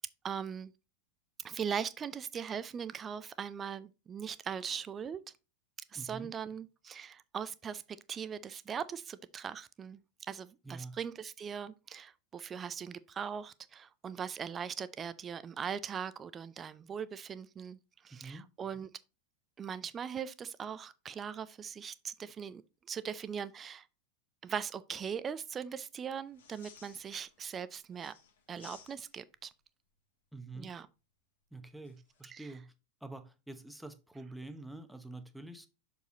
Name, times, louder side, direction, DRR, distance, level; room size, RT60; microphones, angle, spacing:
voice 1, 0.2-0.7 1.4-5.2 5.9-7.8 8.1-10.0 10.3-17.8 18.0-18.9 19.6-22.6 22.9-23.9 24.4-28.1 28.5-29.5 30.6-30.9 32.3-32.5, right 7 dB, 25° right, 0.6 m, -40 dB
voice 2, 5.9-6.3 10.6-11.0 18.1-18.4 30.3-30.7 31.5-32.7 33.0-35.7, right 2 dB, 5° right, 1.0 m, -46 dB
sound 1, 26.3-27.6 27.9-29.4 31.8-32.2, left 6 dB, 65° left, 1.6 m, -57 dB
6.6 x 5.1 x 3.8 m
figure-of-eight pair, 90°, 0 cm